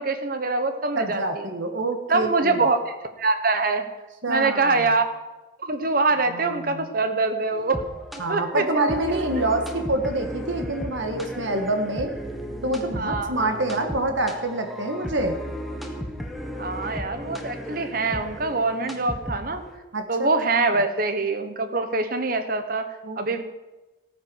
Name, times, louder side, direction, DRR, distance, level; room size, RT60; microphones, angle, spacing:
voice 1, 0.0-1.5 2.1-3.9 4.3-5.0 5.6-7.8 8.3-9.2 13.0-13.6 16.6-19.6 20.1-23.4, right 3 dB, 50° right, 8 dB, 1.2 m, -24 dB
voice 2, 1.0-2.6 4.2-4.9 6.3-6.9 8.2-12.1 12.6-15.4 19.9-20.8 23.0-23.2, right 2 dB, 80° right, 5 dB, 1.7 m, -27 dB
sound 1, 7.5-19.8, equal, ahead, 1.2 m, -35 dB
15.0 x 9.4 x 6.3 m, 1.1 s
head